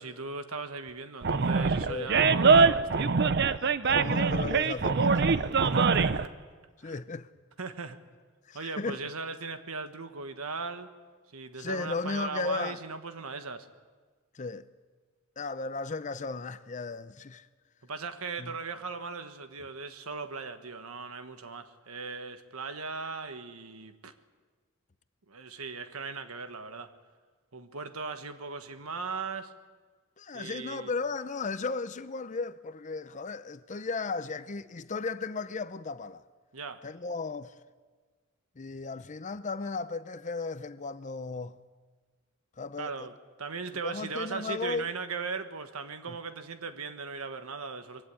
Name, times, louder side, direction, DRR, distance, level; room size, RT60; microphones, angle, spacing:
voice 1, 0.0-3.1 5.7-6.3 6.8-7.0 7.6-8.0 8.5-10.9 11.3-13.7 17.8-24.1 25.3-26.9 27.5-29.5 30.3-30.9 36.5-36.8 42.8-48.1, right 4 dB, 85° right, 1.4 m, -38 dB
Animal, 1.2-6.3, right 4 dB, 50° right, 0.6 m, -23 dB
voice 2, 1.8-2.3 3.6-5.7 6.8-7.3 8.5-9.0 11.6-12.8 14.3-14.7 15.4-17.5 18.4-18.6 30.2-36.2 36.8-37.5 38.6-41.6 42.6-43.1 43.8-44.9 46.1-46.2, left 4 dB, 35° left, 0.6 m, -35 dB
22.5 x 16.5 x 8.4 m
head